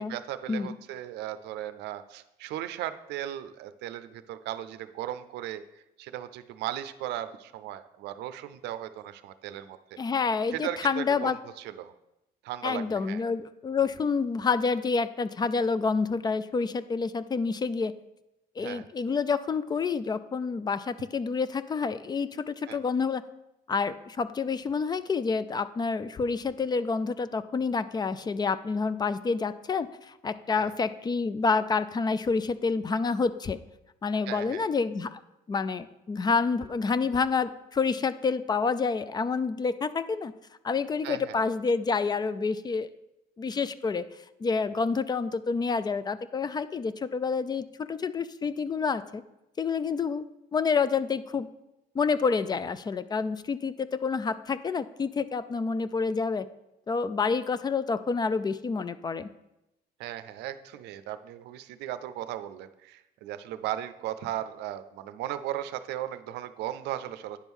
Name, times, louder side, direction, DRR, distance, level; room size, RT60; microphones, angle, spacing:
voice 1, 0.0-5.6 6.0-10.0 10.5-11.9 12.4-13.2 18.6-18.9 22.7-22.8 30.6-30.7 34.3-34.7 41.0-41.4 60.0-67.4, right 12 dB, 85° right, 12 dB, 0.5 m, -37 dB
voice 2, 10.0-11.4 12.6-17.9 18.6-23.2 23.7-33.6 34.0-35.2 35.5-40.3 40.6-42.9 43.4-44.1 44.4-49.2 49.6-50.2 50.5-51.5 51.9-56.5 56.9-59.3, left 5 dB, 25° left, 15 dB, 0.3 m, -28 dB
9.9 x 3.6 x 6.1 m, 0.91 s
cardioid pair, 110°, 17 cm